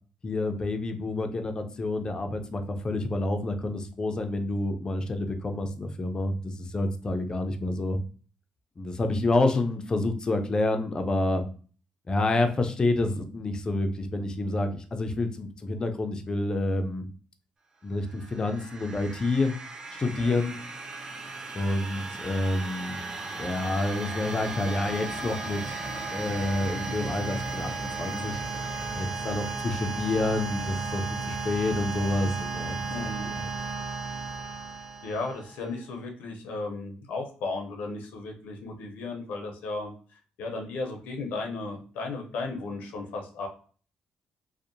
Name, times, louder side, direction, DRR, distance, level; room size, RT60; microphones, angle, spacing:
voice 1, 0.2-8.0 8.8-11.4 12.1-17.1 17.8-19.5 19.9-20.6 21.5-23.0 23.4-25.8 26.1-28.4 29.0-33.5, left 2 dB, 30° left, 6 dB, 0.4 m, -28 dB
sound 1, 18.0-35.6, right 3 dB, 35° right, 0.5 m, -35 dB
voice 2, 32.9-33.3 34.5-39.9 40.4-43.5, left 3 dB, 85° left, 3 dB, 0.5 m, -35 dB
2.7 x 2.0 x 2.5 m, 0.41 s
cardioid pair, 95°, 3 cm